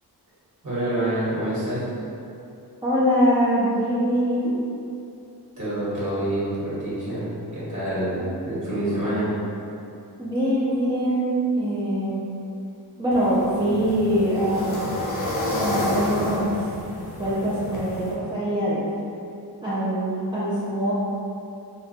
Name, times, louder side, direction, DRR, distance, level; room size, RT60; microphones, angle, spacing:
voice 1, 0.6-1.8 5.6-9.3, right 1 dB, 45° right, -11 dB, 1.3 m, -27 dB
voice 2, 2.8-4.4 10.2-12.2 13.0-14.8 15.5-16.5 17.2-18.8 19.6-20.9, equal, 10° right, -11 dB, 0.4 m, -23 dB
sound 1, 13.1-18.1, left 1 dB, 50° left, 0.8 m, -30 dB
4.0 x 2.2 x 2.6 m, 2.7 s
wide cardioid pair, 145°, 40 cm